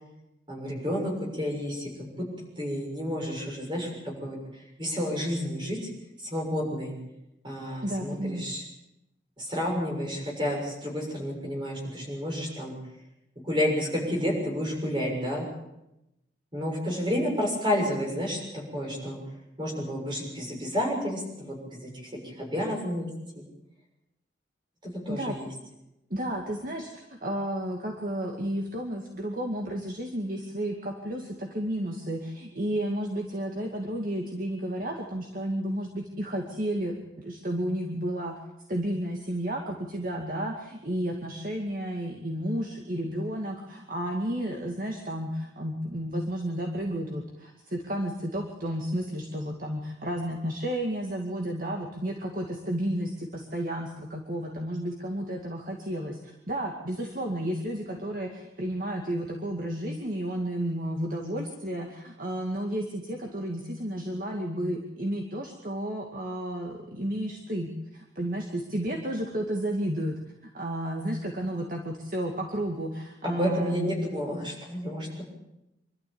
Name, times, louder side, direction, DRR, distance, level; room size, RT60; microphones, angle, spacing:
voice 1, 0.5-2.3 2.6-5.9 6.2-6.9 7.4-8.6 9.4-12.8 13.4-15.5 16.5-19.2 19.6-23.1 23.3-23.4 24.8-25.5 73.2-75.2, equal, 25° right, -1 dB, 6.8 m, -30 dB
voice 2, 7.8-8.4 25.1-25.4 26.1-38.3 38.7-70.1 70.5-74.0, right 1 dB, 45° right, 0 dB, 2.3 m, -32 dB
25.0 x 13.0 x 8.9 m, 0.89 s
head